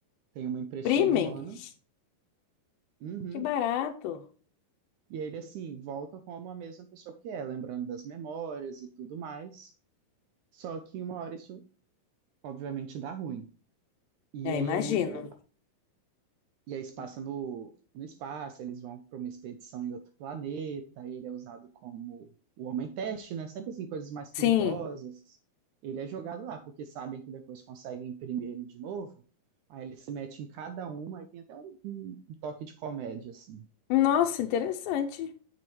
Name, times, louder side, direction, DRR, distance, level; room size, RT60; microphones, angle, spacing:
voice 1, 0.4-1.6 3.0-3.5 5.1-9.7 10.5-11.6 12.4-13.5 14.3-15.3 16.7-22.3 22.6-25.4 25.8-29.1 29.7-33.7, right 7 dB, 75° right, 1.9 m, -38 dB
voice 2, 0.9-1.4 1.6-1.7 3.3-4.2 14.4-15.3 24.4-24.8 33.9-35.3, left 11 dB, 85° left, 2.4 m, -27 dB
7.6 x 7.4 x 3.1 m
omnidirectional pair, 4.1 m